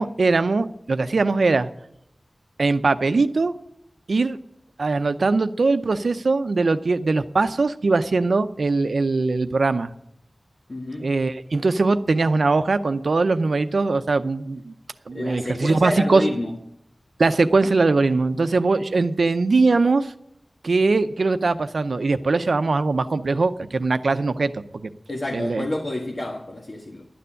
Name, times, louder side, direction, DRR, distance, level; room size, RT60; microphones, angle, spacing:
voice 1, 0.0-1.7 2.6-3.5 4.1-4.4 4.8-9.9 11.0-14.7 15.1-16.2 17.2-20.1 20.6-24.9 25.3-25.7, right 3 dB, 85° right, 0.6 m, -21 dB
voice 2, 10.7-11.1 15.1-16.5 25.1-27.1, left 1 dB, 60° left, 1.4 m, -29 dB
12.0 x 6.9 x 9.9 m
wide cardioid pair, 55°, 0 cm